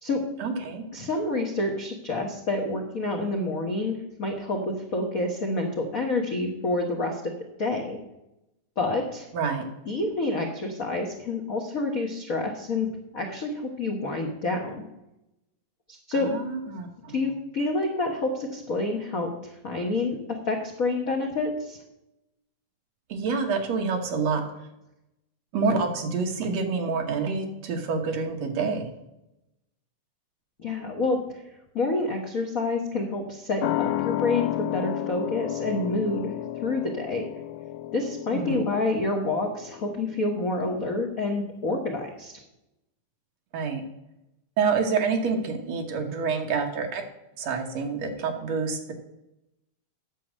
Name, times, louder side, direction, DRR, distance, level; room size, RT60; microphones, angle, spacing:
voice 1, 0.4-0.9 9.3-9.6 16.2-17.2 23.1-24.4 25.5-28.9 38.3-38.7 43.5-43.8 44.6-47.0 47.4-48.9, right 5 dB, 65° right, 4 dB, 2.4 m, -27 dB
voice 2, 0.9-7.2 7.6-8.0 8.8-9.3 9.9-12.9 13.1-14.8 15.9-16.3 17.1-20.2 20.5-21.8 30.6-31.2 31.7-36.3 36.6-37.3 37.9-42.3, left 2 dB, 55° left, 2 dB, 0.9 m, -28 dB
sound 1, 33.6-40.7 41.0-41.1, left 14 dB, 85° left, 2.0 m, -32 dB
10.0 x 7.3 x 6.4 m, 0.89 s
omnidirectional pair, 3.4 m